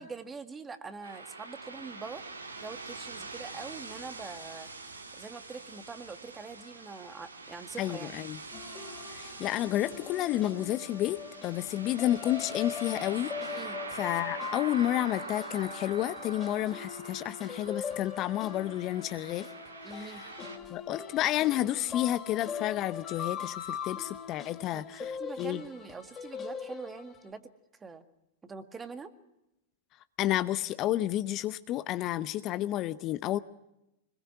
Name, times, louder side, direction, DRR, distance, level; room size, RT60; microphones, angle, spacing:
voice 1, 0.0-2.2 2.6-4.7 5.1-8.2 13.5-13.8 19.8-20.2 24.7-28.0 28.4-29.1, right 4 dB, 15° right, 1.8 m, -44 dB
sound 1, 1.0-20.6, right 3 dB, 85° right, 2.6 m, -44 dB
voice 2, 7.8-8.4 9.1-13.6 13.9-19.5 20.7-25.0 25.4-25.6 30.2-33.4, left 14 dB, 40° left, 0.8 m, -30 dB
sound 2, 8.5-27.3, left 7 dB, 20° left, 3.4 m, -41 dB
25.5 x 21.0 x 6.0 m
figure-of-eight pair, 100°, 0 cm